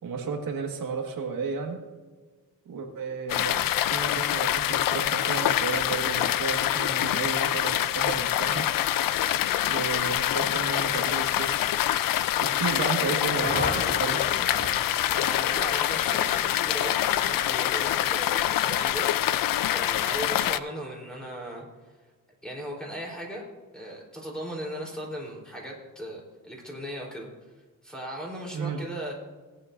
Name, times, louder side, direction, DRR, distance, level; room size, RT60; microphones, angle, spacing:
voice 1, 0.0-1.8 2.7-3.6 3.9-8.6 9.6-11.6 12.6-14.2 28.5-28.8, right 5 dB, 90° right, 1 dB, 1.8 m, -33 dB
sound 1, 3.3-20.6, left 12 dB, 80° left, 0.5 m, -25 dB
sound 2, 12.8-16.8, left 2 dB, 35° left, 3.4 m, -36 dB
voice 2, 15.1-19.1 19.7-21.7 22.4-23.4 23.7-27.3 27.8-29.1, equal, ahead, -3 dB, 3.8 m, -37 dB
18.5 x 9.5 x 2.7 m, 1.3 s
wide cardioid pair, 140°, 33 cm